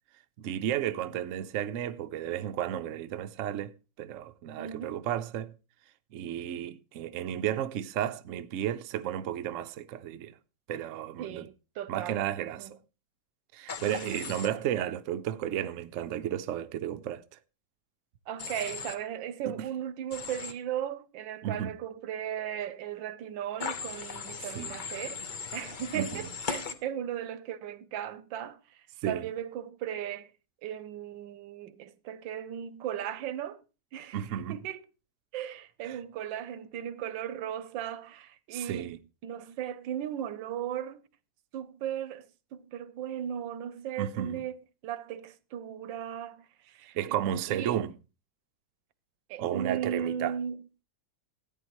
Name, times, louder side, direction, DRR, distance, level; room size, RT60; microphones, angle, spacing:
voice 1, 0.4-3.7 4.0-5.5 6.1-10.3 10.7-11.5 11.9-12.7 13.5-17.4 19.5-19.7 21.4-21.7 24.4-24.7 25.9-26.2 29.0-29.2 34.1-34.6 35.9-36.0 38.5-39.0 44.0-44.4 46.9-48.0 49.4-50.4, right 11 dB, 65° right, 0.7 m, -33 dB
voice 2, 4.6-5.0 11.2-12.2 12.6-12.7 18.3-25.2 25.5-28.6 29.1-30.3 30.6-33.6 33.9-34.2 34.5-34.8 35.3-41.0 41.5-42.3 42.5-44.6 44.8-47.0 47.5-47.8 49.3-50.6, right 10 dB, 85° right, 1.4 m, -36 dB
Human voice / Train, 13.7-14.5 18.4-18.9 20.1-20.5 23.6-26.7, left 5 dB, 70° left, 0.4 m, -38 dB
14.0 x 9.3 x 3.0 m
omnidirectional pair, 2.0 m